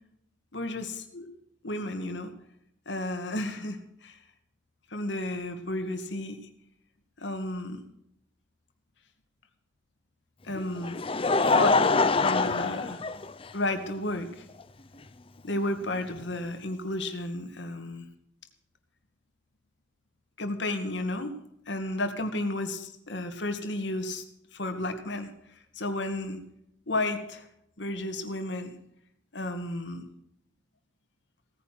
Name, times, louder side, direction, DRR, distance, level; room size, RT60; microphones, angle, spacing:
voice 1, 0.5-1.3 1.6-2.3 2.9-4.2 4.9-6.4 7.2-7.8 10.4-11.0 11.4-13.0 13.5-14.5 15.4-18.1 20.4-21.3 21.7-24.2 24.5-25.3 25.8-26.4 26.9-27.5 27.8-28.8 29.3-30.0, left 2 dB, 65° left, 7 dB, 2.0 m, -32 dB
Laughter, 10.5-13.8 14.6-14.7 16.2-16.3, left 3 dB, 30° left, 0.6 m, -24 dB
17.0 x 9.8 x 5.9 m, 0.75 s
head